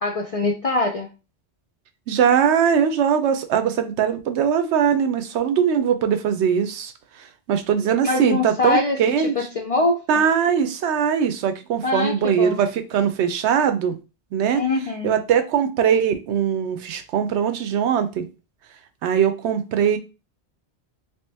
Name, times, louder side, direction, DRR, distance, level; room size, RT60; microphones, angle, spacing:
voice 1, 0.0-1.1 8.0-9.0 9.4-10.0 11.8-12.6 14.5-15.2, left 3 dB, 55° left, 0.4 m, -23 dB
voice 2, 2.1-6.9 7.2-9.4 10.1-14.0 14.3-14.6 15.0-18.3 19.0-20.0, right 8 dB, 90° right, 0.9 m, -21 dB
2.9 x 2.8 x 3.3 m
omnidirectional pair, 1.1 m